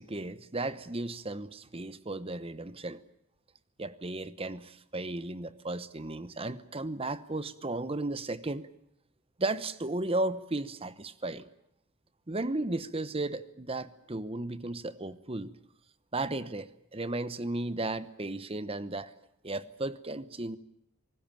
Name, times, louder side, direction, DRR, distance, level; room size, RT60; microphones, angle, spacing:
voice 1, 0.0-3.0 3.8-8.7 9.4-11.5 12.3-15.5 16.1-19.1 19.4-20.6, right 2 dB, 25° right, 1.0 m, -35 dB
27.0 x 19.0 x 9.0 m
head